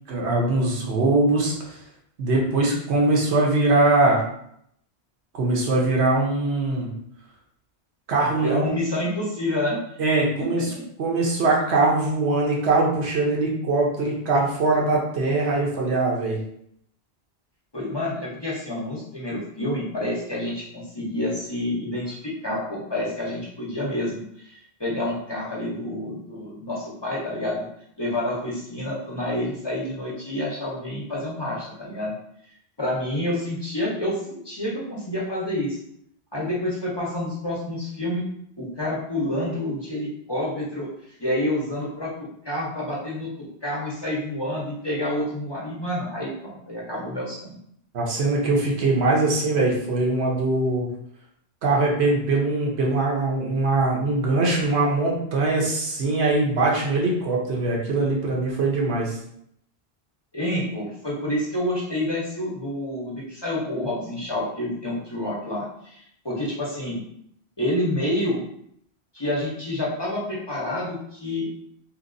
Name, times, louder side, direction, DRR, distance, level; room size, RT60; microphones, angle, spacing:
voice 1, 0.1-1.8 2.2-4.2 5.3-6.9 8.1-8.8 10.0-10.7 11.0-16.4 47.9-50.9 51.6-59.2, right 2 dB, 80° right, -2 dB, 1.1 m, -22 dB
voice 2, 8.4-9.8 10.4-10.5 17.7-27.7 28.0-32.1 32.8-35.8 36.3-38.3 38.6-40.9 41.2-47.6 60.3-67.0 67.6-68.4 69.1-71.5, left 1 dB, 30° left, -6 dB, 0.6 m, -28 dB
2.9 x 2.9 x 2.5 m, 0.71 s
omnidirectional pair, 1.1 m